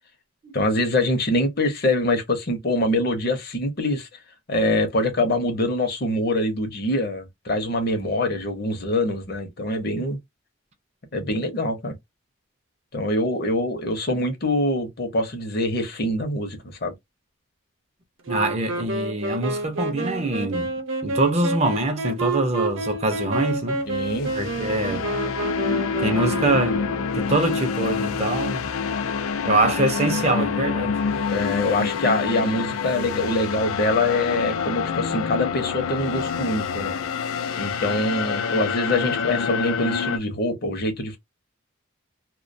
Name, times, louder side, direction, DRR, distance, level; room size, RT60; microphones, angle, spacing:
voice 1, 0.5-4.1 4.5-10.2 11.1-11.9 12.9-16.9 23.9-24.3 31.3-36.9 37.6-41.2, left 1 dB, 50° left, 0.7 m, -24 dB
Wind instrument woodwind instrument, 18.2-27.3, right 2 dB, 70° right, 0.7 m, -29 dB
voice 2, 18.3-20.7 21.0-23.8 24.3-25.1 26.0-26.9 27.1-28.7 29.5-31.0, right 2 dB, 30° right, 0.4 m, -24 dB
sound 1, 23.9-40.2, left 6 dB, 85° left, 0.4 m, -27 dB
2.2 x 2.1 x 2.5 m
head